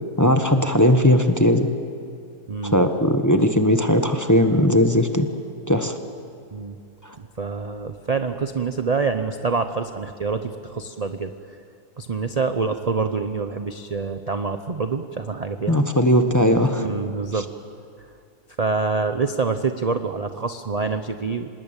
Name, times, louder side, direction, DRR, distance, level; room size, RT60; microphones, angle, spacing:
voice 1, 0.2-1.7 2.6-5.3 5.7-5.9 15.7-16.9, left 1 dB, 15° left, 6 dB, 1.0 m, -18 dB
voice 2, 7.2-11.3 12.0-15.8 16.8-17.5 18.6-21.5, right 4 dB, 35° right, 8 dB, 0.6 m, -26 dB
26.0 x 20.0 x 8.9 m, 2.4 s
omnidirectional pair, 1.7 m